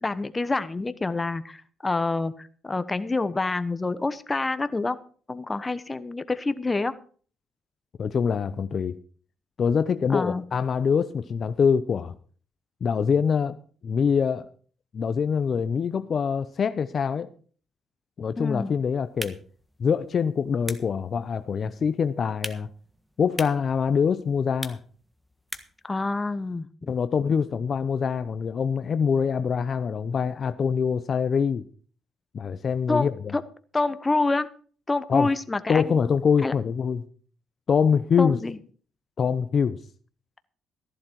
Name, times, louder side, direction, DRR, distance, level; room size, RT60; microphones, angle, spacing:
voice 1, 0.0-5.0 5.3-6.9 10.1-10.4 18.4-18.7 25.8-27.0 32.9-33.4 33.7-34.5 34.9-35.8 36.4-36.5 38.2-38.6, left 3 dB, 20° left, 1.1 m, -27 dB
voice 2, 8.0-9.0 9.6-12.1 12.8-13.6 13.8-14.5 14.9-17.3 18.2-19.4 19.8-22.7 23.2-24.8 26.9-31.6 32.3-33.3 35.1-35.3 35.7-37.0 37.7-38.4 39.2-39.8, left 6 dB, 50° left, 0.7 m, -24 dB
sound 1, 19.0-25.9, equal, ahead, 1.5 m, -43 dB
14.0 x 11.5 x 4.6 m
cardioid pair, 90°, 0 cm